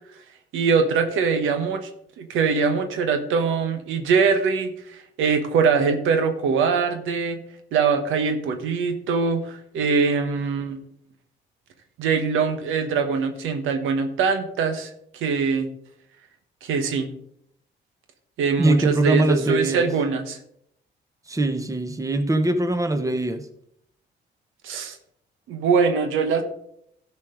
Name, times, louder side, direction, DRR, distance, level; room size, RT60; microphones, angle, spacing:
voice 1, 0.5-1.9 2.2-7.4 7.7-10.8 12.0-15.7 16.6-17.1 18.4-20.4 24.6-25.0 25.5-26.4, right 5 dB, 90° right, 7 dB, 1.2 m, -23 dB
voice 2, 18.6-19.9 21.3-23.5, right 2 dB, 15° right, 8 dB, 1.1 m, -22 dB
13.0 x 5.1 x 5.1 m, 0.71 s
cardioid pair, 90°, 20 cm